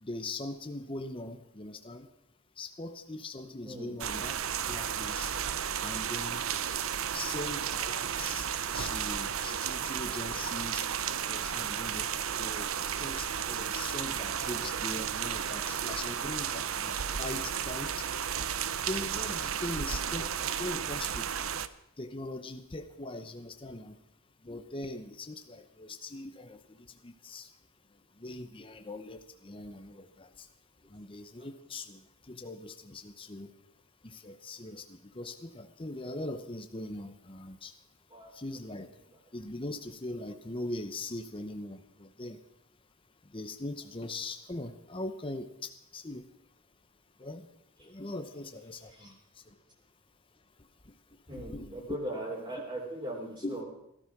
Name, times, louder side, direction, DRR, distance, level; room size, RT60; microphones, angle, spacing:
voice 1, 0.0-2.1 2.6-4.4 4.7-5.3 5.8-6.4 7.0-8.5 8.7-10.8 11.3-12.1 12.4-12.7 13.0-16.9 17.2-17.9 18.9-20.3 20.6-21.3 22.0-23.9 24.4-26.6 27.0-27.5 28.2-30.5 30.9-32.0 32.3-33.5 34.0-34.8 35.1-37.7 38.3-38.9 39.3-42.4 43.3-46.2 47.2-47.5 47.8-48.9 51.3-51.9 53.4-53.6, left 2 dB, 25° left, 7 dB, 0.9 m, -41 dB
sound 1, 4.0-21.7, right 8 dB, 75° right, 0.7 m, -33 dB
voice 2, 51.3-53.6, right 1 dB, 25° right, -3 dB, 3.4 m, -39 dB
17.0 x 12.5 x 6.0 m, 0.81 s
head